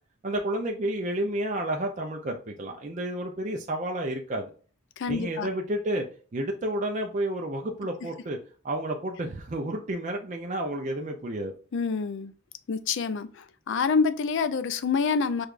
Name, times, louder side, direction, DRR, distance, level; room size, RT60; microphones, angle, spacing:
voice 1, 0.2-4.5 5.1-6.0 6.3-8.4 8.6-11.5, right 1 dB, 35° right, 0.4 m, -30 dB
voice 2, 5.0-5.5 11.7-12.3 12.7-15.5, left 5 dB, 55° left, 0.4 m, -27 dB
6.3 x 2.3 x 2.4 m
head